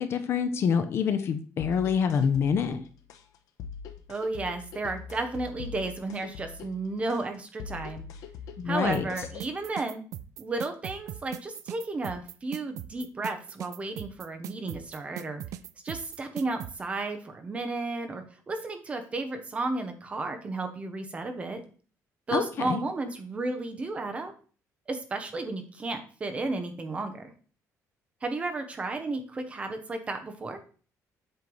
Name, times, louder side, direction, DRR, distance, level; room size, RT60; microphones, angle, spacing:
voice 1, 0.0-2.8 8.6-9.0 22.3-22.8, left 7 dB, 45° left, 9 dB, 0.6 m, -26 dB
sound 1, 1.6-9.6, left 6 dB, 75° left, 0.8 m, -43 dB
voice 2, 4.1-8.0 8.6-10.0 10.4-15.4 15.8-21.6 22.3-24.3 24.9-27.3 28.2-30.6, right 3 dB, 20° right, 6 dB, 0.8 m, -33 dB
sound 2, 8.9-16.7, right 12 dB, 70° right, 0.4 m, -39 dB
7.8 x 3.2 x 5.4 m, 0.39 s
cardioid pair, 175°, 6 cm